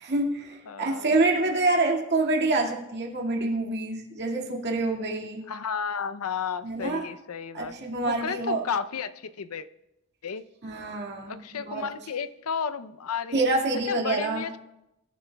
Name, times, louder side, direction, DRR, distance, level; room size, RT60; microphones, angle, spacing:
voice 1, 0.0-5.5 6.6-7.0 7.5-8.6 10.6-11.9 13.3-14.5, right 2 dB, 50° right, -1 dB, 2.0 m, -27 dB
voice 2, 0.7-1.1 5.5-7.7 8.1-9.7 10.2-10.4 11.3-13.4 13.9-14.6, left 6 dB, 75° left, 13 dB, 0.6 m, -32 dB
22.5 x 11.0 x 2.3 m, 0.89 s
head